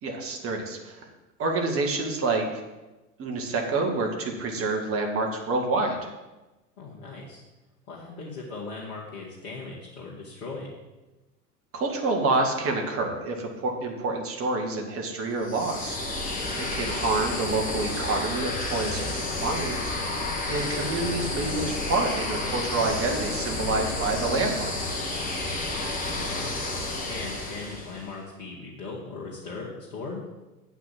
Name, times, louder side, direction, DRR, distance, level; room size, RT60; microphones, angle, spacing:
voice 1, 0.0-1.1 1.4-2.6 3.2-6.1 11.7-16.0 16.6-20.0 20.5-24.7, right 3 dB, 25° right, 2 dB, 2.0 m, -28 dB
voice 2, 6.8-7.4 7.9-10.7 16.5-16.8 20.5-20.8 25.6-26.5 27.0-30.2, left 3 dB, 60° left, -4 dB, 2.3 m, -39 dB
sound 1, 15.4-28.1, left 2 dB, 15° left, 1.8 m, -31 dB
8.4 x 5.8 x 7.7 m, 1.1 s
figure-of-eight pair, 90°, 49 cm